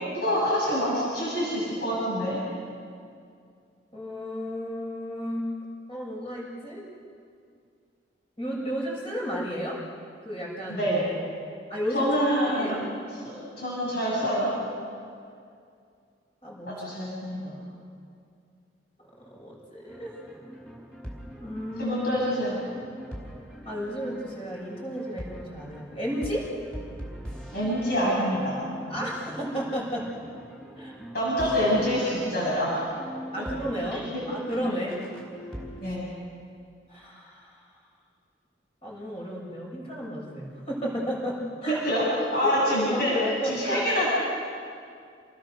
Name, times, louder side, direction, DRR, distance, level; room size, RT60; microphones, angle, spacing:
voice 1, 0.1-2.4 10.7-11.1 11.9-12.9 13.2-14.5 16.7-17.6 21.8-22.6 27.5-28.6 31.1-32.9 33.4-33.5 34.1-34.4 34.6-34.8 35.8-36.1 41.7-43.1 43.4-44.1, equal, 55° left, -5 dB, 7.5 m, -26 dB
voice 2, 3.9-5.5 5.9-6.9 8.4-9.8 10.2-10.9 11.7-12.1 12.5-12.8 16.4-16.8 19.2-20.2 21.4-22.0 23.7-26.5 28.9-30.1 30.8-31.0 33.3-34.9 35.8-35.9 36.9-37.7 38.8-41.8 42.4-44.1, equal, 30° left, -4 dB, 7.1 m, -33 dB
sound 1, 19.9-35.7, equal, 5° left, 4.8 m, -42 dB
29.0 x 20.5 x 6.8 m, 2.3 s
head